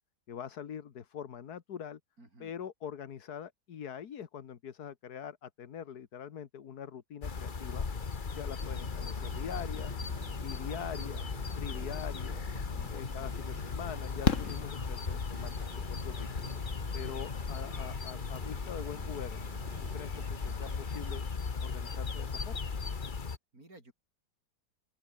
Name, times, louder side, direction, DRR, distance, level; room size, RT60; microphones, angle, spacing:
voice 1, 0.3-2.0 2.4-7.8 8.3-9.9 10.4-11.3 11.6-12.4 12.9-15.5 15.9-16.5 16.9-19.4 19.9-21.2 21.6-22.7, left 8 dB, 70° left, 1.8 m, -43 dB
voice 2, 2.2-2.5 12.6-13.4 23.5-23.9, right 2 dB, 60° right, 7.3 m, -55 dB
sound 1, 7.2-23.4, left 5 dB, 30° left, 1.3 m, -37 dB
sound 2, 8.6-21.1, right 2 dB, 90° right, 8.2 m, -49 dB
Fireworks, 14.2-15.6 17.3-17.4 17.6-17.7, left 6 dB, 50° left, 1.9 m, -32 dB
open air
omnidirectional pair, 1.7 m